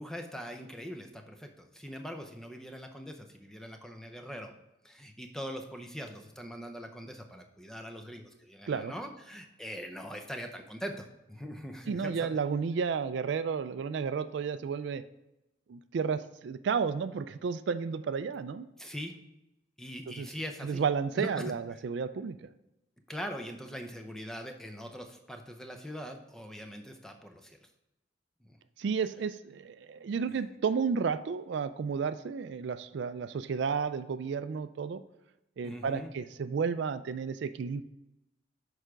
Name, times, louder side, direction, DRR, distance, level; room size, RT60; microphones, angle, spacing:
voice 1, 0.0-4.5 4.8-12.3 18.8-19.2 19.8-20.8 21.2-21.5 23.1-27.6 28.5-28.6 35.6-36.1, equal, 5° left, 4 dB, 0.5 m, -42 dB
voice 2, 11.9-15.0 15.7-18.7 20.1-20.3 20.6-22.4 28.8-35.0 35.6-37.8, right 6 dB, 65° right, 12 dB, 0.3 m, -32 dB
6.7 x 4.9 x 4.6 m, 0.91 s
head